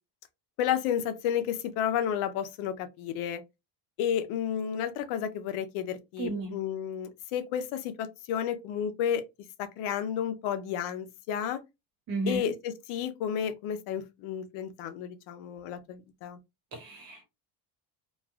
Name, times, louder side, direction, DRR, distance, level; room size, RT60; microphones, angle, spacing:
voice 1, 0.6-3.4 4.0-9.2 9.6-11.6 12.3-16.4, left 9 dB, 85° left, 0.7 m, -32 dB
voice 2, 6.2-6.5 12.1-12.4 16.7-17.3, right 3 dB, 45° right, 1.1 m, -33 dB
3.1 x 2.3 x 2.3 m
cardioid pair, 170°, 48 cm